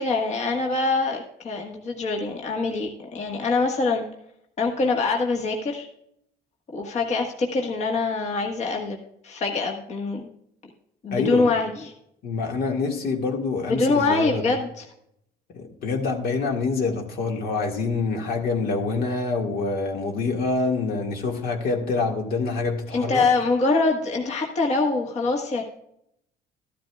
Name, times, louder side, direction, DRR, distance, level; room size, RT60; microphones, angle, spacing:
voice 1, 0.0-4.0 4.6-5.9 6.7-9.0 9.2-10.3 11.0-11.9 13.7-14.7 22.9-25.6, left 3 dB, 40° left, 1.5 m, -24 dB
voice 2, 11.1-11.5 12.2-14.5 15.5-23.3, left 4 dB, 65° left, 1.9 m, -26 dB
13.5 x 12.0 x 2.4 m
cardioid pair, 110°, 17 cm